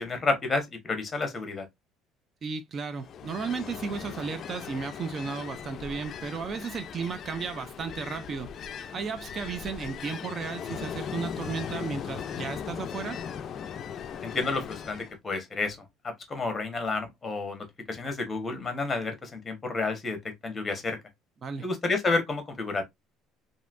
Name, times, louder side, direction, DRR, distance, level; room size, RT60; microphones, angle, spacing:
voice 1, 0.0-1.7 14.2-15.8 16.0-21.0 21.6-22.8, left 3 dB, 25° left, 1.1 m, -30 dB
voice 2, 2.4-8.5 8.9-13.2 21.4-21.7, right 5 dB, 40° right, 0.4 m, -34 dB
Ocean, 3.0-15.1, left 8 dB, 45° left, 0.4 m, -38 dB
3.0 x 2.6 x 2.5 m
supercardioid pair, 105°, 0 cm